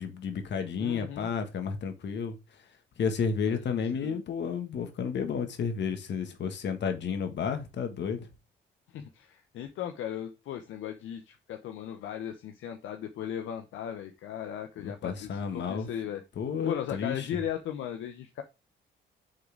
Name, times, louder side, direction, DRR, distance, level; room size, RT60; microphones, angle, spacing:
voice 1, 0.0-2.3 3.0-8.3 14.8-15.9 16.4-17.3, left 6 dB, 60° left, 1.7 m, -32 dB
voice 2, 0.8-1.3 3.5-4.2 8.9-16.2 16.6-18.4, left 10 dB, 80° left, 0.9 m, -37 dB
6.5 x 4.0 x 4.9 m
cardioid pair, 90°, 20 cm